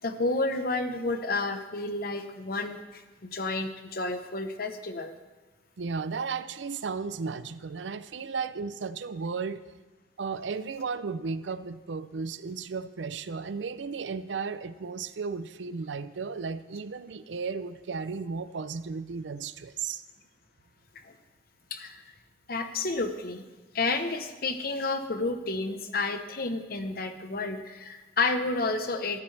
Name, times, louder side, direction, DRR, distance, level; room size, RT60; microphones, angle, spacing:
voice 1, 0.0-5.1 21.0-21.1 21.7-22.0 22.5-23.4 23.7-29.2, left 3 dB, 55° left, 7 dB, 0.9 m, -30 dB
voice 2, 5.8-9.6 10.2-20.0, right 5 dB, 80° right, 14 dB, 0.5 m, -34 dB
14.0 x 12.5 x 3.3 m, 1.2 s
head